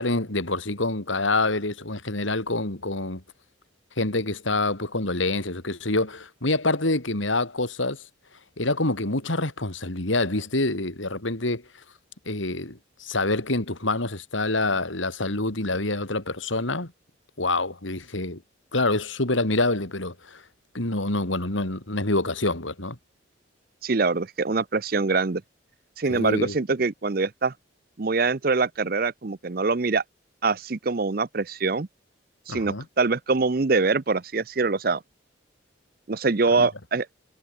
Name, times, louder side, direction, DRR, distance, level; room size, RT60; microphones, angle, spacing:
voice 1, 0.0-3.2 4.0-8.0 8.6-11.6 12.2-16.9 17.4-18.4 18.7-20.4 20.7-23.0 26.1-26.5 32.5-32.8 36.6-36.7, left 2 dB, 80° left, 3.3 m, -26 dB
voice 2, 23.8-25.4 26.0-27.5 28.0-30.0 30.4-31.9 32.5-35.0 36.1-37.1, right 4 dB, 50° right, 0.7 m, -24 dB
head